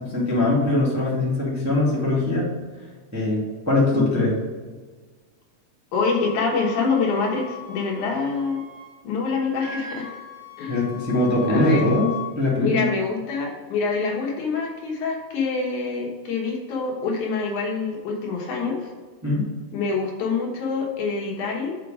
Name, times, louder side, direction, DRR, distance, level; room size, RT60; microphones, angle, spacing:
voice 1, 0.0-2.5 3.1-4.4 10.7-12.8 19.2-19.4, left 2 dB, 5° right, -6 dB, 1.6 m, -21 dB
voice 2, 5.9-8.6 9.0-10.1 10.6-10.8 11.5-11.9 12.6-18.9 19.7-21.8, left 4 dB, 75° left, 0 dB, 2.8 m, -26 dB
Wind instrument woodwind instrument, 6.1-9.0 9.2-12.3, left 8 dB, 50° right, 2.7 m, -38 dB
6.3 x 5.6 x 5.0 m, 1.4 s
omnidirectional pair, 3.6 m